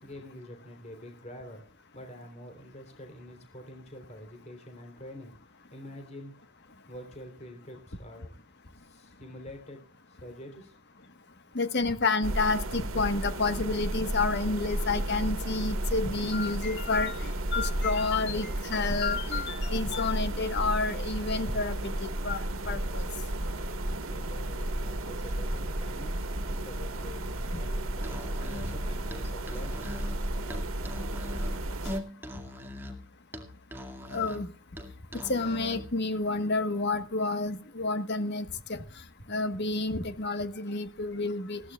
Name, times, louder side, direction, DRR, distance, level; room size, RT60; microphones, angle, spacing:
voice 1, 0.0-1.6 1.9-5.3 5.7-6.4 6.9-8.4 8.7-9.8 10.1-10.8 24.1-26.2 26.5-29.9, equal, 30° left, 4 dB, 3.5 m, -46 dB
voice 2, 11.5-23.0 34.1-34.5 35.3-38.8 39.3-41.6, left 3 dB, 55° left, 10 dB, 1.4 m, -30 dB
sound 1, 12.2-32.0, right 1 dB, 75° right, 1.6 m, -33 dB
Musical instrument, 28.0-35.9, left 1 dB, 10° right, 2.1 m, -41 dB
20.5 x 16.0 x 2.4 m, 0.40 s
head